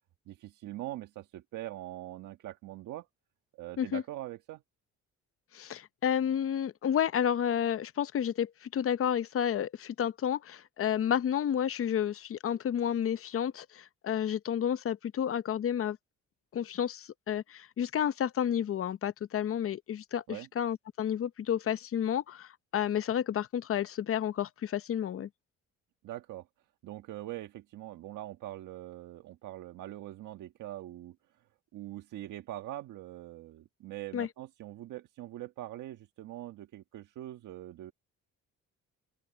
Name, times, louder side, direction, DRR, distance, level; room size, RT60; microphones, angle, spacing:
voice 1, 0.3-3.1 3.6-4.6 20.3-20.5 26.0-26.5 26.8-31.2 31.7-37.9, right 14 dB, 85° right, 1.5 m, -43 dB
voice 2, 5.5-16.0 16.5-25.3 34.1-34.3, left 9 dB, 45° left, 0.7 m, -31 dB
open air
cardioid pair, 90°, 30 cm